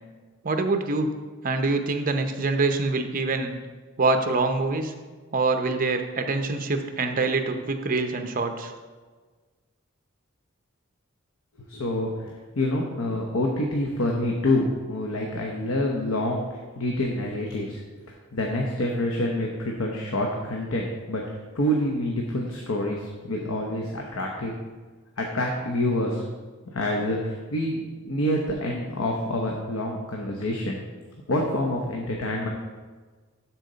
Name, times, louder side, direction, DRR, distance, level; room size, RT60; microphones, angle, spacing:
voice 1, 0.4-1.1 1.4-3.6 4.0-4.9 5.3-8.7, right 3 dB, 40° right, 6 dB, 0.7 m, -25 dB
voice 2, 11.7-12.1 12.5-16.4 16.8-17.8 18.3-24.5 25.2-26.3 26.7-30.8 31.3-32.5, left 1 dB, 75° left, 0 dB, 0.9 m, -27 dB
12.0 x 4.4 x 4.0 m, 1.4 s
head